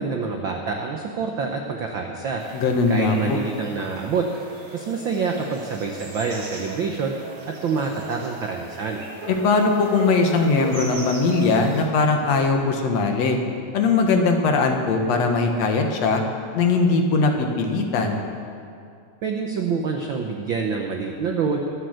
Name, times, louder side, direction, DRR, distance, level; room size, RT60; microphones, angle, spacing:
voice 1, 0.0-2.4 2.9-4.3 4.7-7.2 7.6-9.0 19.2-21.6, right 5 dB, 85° right, 2 dB, 1.0 m, -26 dB
sound 1, 2.4-11.9, right 3 dB, 45° right, 3.2 m, -38 dB
voice 2, 2.5-3.4 9.3-13.4 13.7-16.2 16.6-18.2, left 4 dB, 60° left, 3 dB, 2.3 m, -20 dB
23.5 x 7.9 x 6.5 m, 2.3 s
omnidirectional pair, 3.6 m